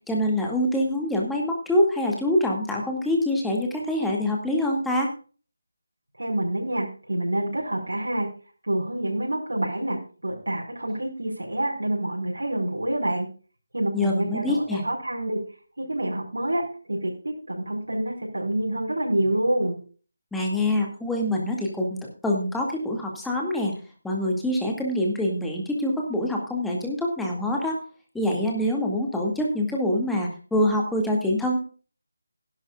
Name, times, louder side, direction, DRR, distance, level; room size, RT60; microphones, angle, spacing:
voice 1, 0.1-5.1 13.9-14.8 20.3-23.7 24.0-27.8 28.1-31.6, left 1 dB, 5° left, -1 dB, 2.2 m, -25 dB
voice 2, 6.2-8.3 8.6-13.3 13.7-15.4 15.8-19.8, right 1 dB, 90° right, -1 dB, 5.1 m, -27 dB
18.0 x 11.5 x 2.4 m, 0.38 s
figure-of-eight pair, 165°, 0 cm